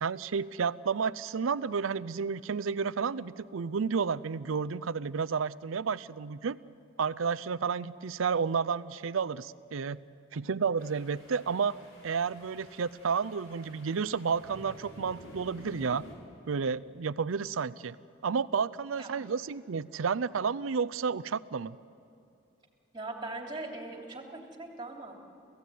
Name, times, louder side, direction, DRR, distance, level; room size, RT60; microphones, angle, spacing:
voice 1, 0.0-6.6 7.0-10.0 10.3-11.8 12.0-16.0 16.5-18.0 18.2-21.8, right 5 dB, 85° right, 18 dB, 0.5 m, -31 dB
sound 1, 10.8-16.2, equal, 80° left, 5.0 m, -51 dB
voice 2, 22.9-25.1, right 2 dB, 25° right, 1 dB, 3.0 m, -40 dB
28.0 x 16.0 x 9.3 m, 2.6 s
head